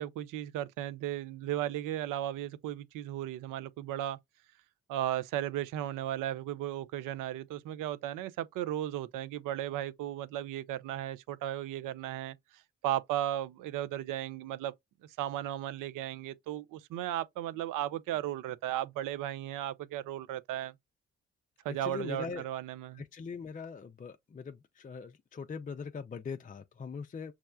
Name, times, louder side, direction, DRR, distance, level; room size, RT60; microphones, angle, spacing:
voice 1, 0.0-4.2 4.9-14.7 15.2-20.7 21.6-23.0, right 12 dB, 75° right, 0.5 m, -35 dB
voice 2, 21.8-22.4 23.0-27.3, left 5 dB, 25° left, 0.4 m, -41 dB
5.9 x 2.1 x 2.3 m
hypercardioid pair, 40°, 32 cm